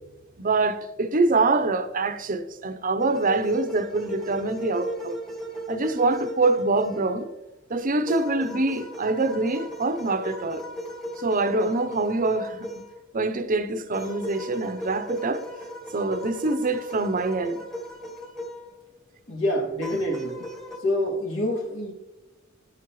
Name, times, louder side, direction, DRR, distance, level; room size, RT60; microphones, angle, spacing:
voice 1, 0.4-5.2 5.7-7.3 7.7-10.6 11.2-12.7 13.1-15.4 15.9-17.6, right 3 dB, 40° right, 0.7 m, -25 dB
sound 1, 3.0-7.3 8.1-13.0 13.9-18.7 19.8-20.8, equal, ahead, 1.2 m, -37 dB
voice 2, 19.3-20.5 20.8-21.9, left 1 dB, 65° left, 2.5 m, -26 dB
11.0 x 11.0 x 3.1 m
head